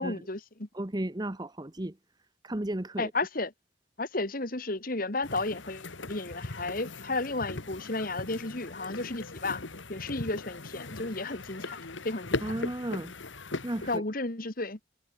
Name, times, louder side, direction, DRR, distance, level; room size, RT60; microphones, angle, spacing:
voice 1, 0.0-0.7 3.0-3.5 4.0-9.6 9.9-12.6 13.9-14.8, left 2 dB, 45° left, 1.8 m, -33 dB
voice 2, 0.7-1.9 2.4-3.1 12.4-13.1 13.6-13.9, right 1 dB, 20° right, 0.9 m, -34 dB
sound 1, 5.2-14.0, left 2 dB, 75° left, 2.0 m, -39 dB
head